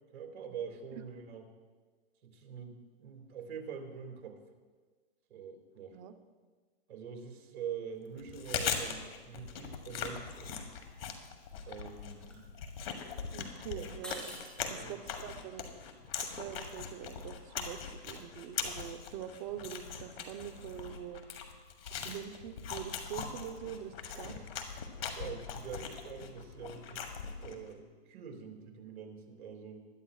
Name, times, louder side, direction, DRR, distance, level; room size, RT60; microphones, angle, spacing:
voice 1, 0.1-1.5 2.2-4.4 5.3-6.0 6.9-10.7 11.6-12.5 13.7-13.9 14.6-14.9 24.2-24.4 25.1-29.9, right 7 dB, 70° right, 3 dB, 2.5 m, -45 dB
Chewing mastication, 8.2-27.7, left 7 dB, 65° left, 1.7 m, -41 dB
sound 1, 11.8-13.5 13.9-18.9, right 1 dB, 5° left, 3.8 m, -51 dB
voice 2, 13.3-14.3 14.7-15.7 16.2-21.2 21.9-24.3, right 10 dB, 35° right, 8 dB, 0.8 m, -44 dB
21.0 x 11.5 x 2.4 m, 1.4 s
hypercardioid pair, 140°, 32 cm